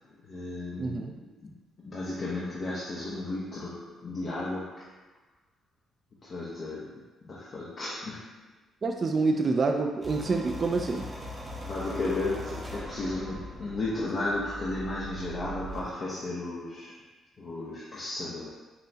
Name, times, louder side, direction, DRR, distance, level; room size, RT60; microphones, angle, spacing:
voice 1, 0.2-1.2 1.4-1.5 1.8-4.9 6.2-8.3 11.6-17.0 17.4-18.5, left 2 dB, 45° left, -7 dB, 0.7 m, -34 dB
voice 2, 0.8-1.2 8.8-11.1, right 3 dB, 40° right, 3 dB, 0.3 m, -27 dB
sound 1, 10.0-15.9, equal, 15° right, 0.7 m, -40 dB
5.4 x 2.0 x 2.7 m, 1.2 s
cardioid pair, 90°, 0 cm